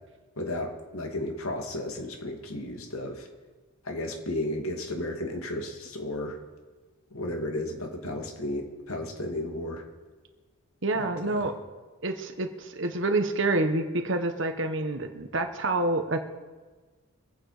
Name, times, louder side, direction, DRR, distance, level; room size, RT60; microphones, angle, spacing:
voice 1, 0.4-3.3 3.8-6.4 7.1-9.8 10.9-11.0, left 1 dB, 85° left, 2 dB, 2.5 m, -33 dB
voice 2, 10.8-11.6 12.0-16.3, right 2 dB, 60° right, 7 dB, 1.3 m, -28 dB
24.0 x 8.7 x 5.1 m, 1.3 s
head